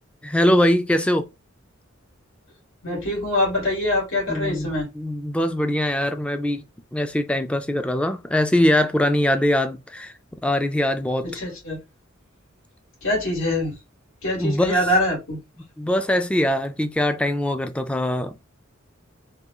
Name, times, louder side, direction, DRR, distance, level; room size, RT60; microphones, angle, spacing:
voice 1, 0.2-1.3 4.3-6.6 6.9-11.3 14.4-14.9 15.8-18.5, left 1 dB, 5° left, 0.3 m, -22 dB
voice 2, 2.8-4.9 11.2-11.8 13.0-13.7 14.2-15.4, left 1 dB, 85° left, 2.1 m, -24 dB
3.5 x 2.3 x 2.9 m
head